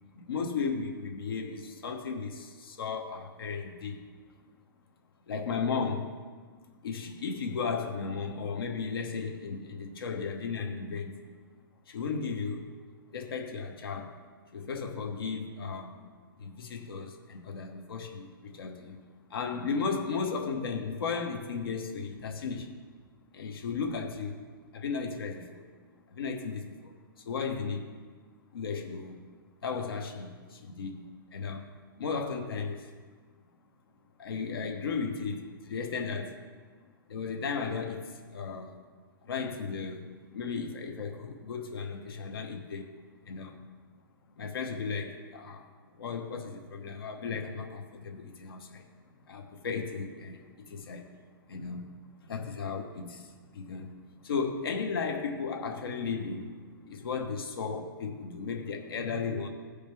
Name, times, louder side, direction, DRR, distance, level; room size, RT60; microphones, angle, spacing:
voice 1, 0.1-4.0 5.3-6.1 6.8-11.1 11.9-12.7 13.1-14.2 14.5-16.0 16.4-19.0 19.3-22.7 23.3-24.4 24.7-25.7 26.1-27.9 28.5-29.2 29.6-31.0 31.3-31.7 32.0-32.9 34.2-36.4 37.1-38.8 39.2-40.1 40.3-42.9 43.2-43.6 44.4-45.7 45.9-48.8 49.3-51.1 51.5-53.9 54.2-56.5 56.9-59.5, left 5 dB, 75° left, 3 dB, 1.1 m, -35 dB
14.5 x 5.0 x 3.4 m, 1.5 s
hypercardioid pair, 140°, 12 cm